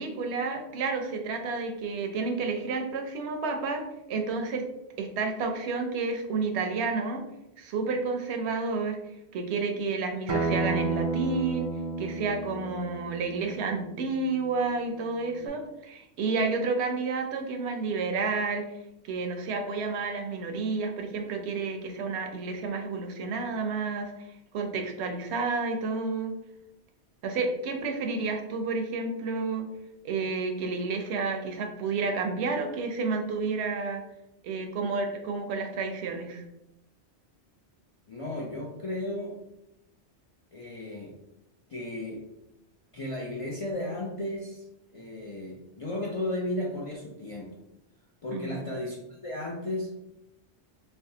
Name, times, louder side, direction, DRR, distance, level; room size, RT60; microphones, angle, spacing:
voice 1, 0.0-4.6 5.0-7.2 7.6-9.0 9.3-11.7 12.0-18.7 19.1-24.3 24.5-26.3 27.2-29.7 30.0-34.0 34.4-36.4 48.3-48.6, right 4 dB, 75° right, 4 dB, 0.8 m, -30 dB
Acoustic guitar, 10.3-15.5, right 3 dB, 40° right, 0.4 m, -33 dB
voice 2, 38.1-39.3 40.5-41.1 41.7-42.2 42.9-44.6 44.9-47.6 48.2-50.0, left 1 dB, 65° left, -3 dB, 0.3 m, -34 dB
3.4 x 2.2 x 2.7 m, 0.87 s
omnidirectional pair, 1.2 m